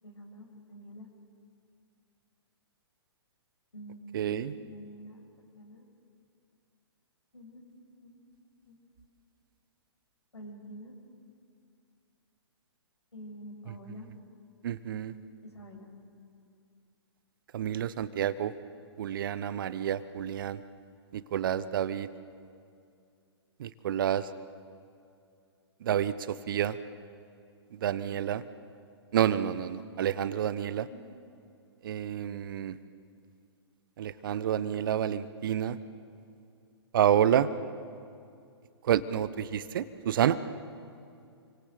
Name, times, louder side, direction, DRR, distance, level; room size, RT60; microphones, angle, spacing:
voice 1, 0.0-1.1 3.7-5.9 7.3-7.7 8.0-8.3 8.7-8.9 10.3-11.0 13.1-14.1 15.4-15.9 30.9-31.1, equal, 80° left, 0 dB, 7.0 m, -47 dB
voice 2, 4.1-4.5 14.6-15.1 17.5-18.5 19.0-20.6 21.1-22.1 23.6-24.3 25.8-26.8 27.8-28.4 29.1-30.9 31.8-32.8 34.0-35.8 36.9-37.5 38.8-40.4, right 10 dB, 50° right, 15 dB, 1.2 m, -29 dB
29.0 x 24.5 x 7.9 m, 2.4 s
figure-of-eight pair, 120°, 14 cm